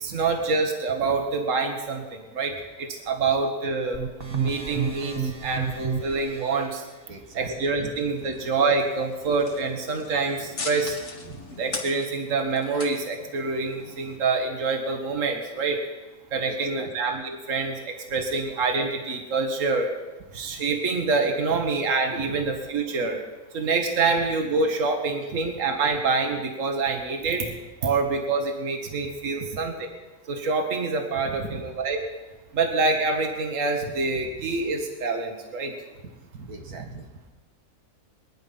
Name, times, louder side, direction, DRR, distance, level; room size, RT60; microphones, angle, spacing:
voice 1, 0.0-4.0 4.4-6.8 7.3-11.0 11.5-15.8 16.3-19.9 20.3-23.2 23.5-27.5 27.8-29.9 30.3-32.0 32.5-35.7, right 4 dB, 60° right, 3 dB, 1.9 m, -26 dB
sound 1, 3.9-6.7, right 6 dB, 40° right, 1.5 m, -30 dB
voice 2, 7.1-7.5 7.8-7.9 8.2-8.3 11.3-11.4 16.5-16.9 22.3-22.4 28.9-29.1 29.4-29.5 31.2-31.6 36.3-37.1, right 3 dB, 80° right, 2 dB, 2.2 m, -39 dB
sound 2, 8.1-14.2, left 3 dB, 50° left, 2.0 m, -40 dB
23.0 x 10.5 x 5.6 m, 1.2 s
omnidirectional pair, 1.6 m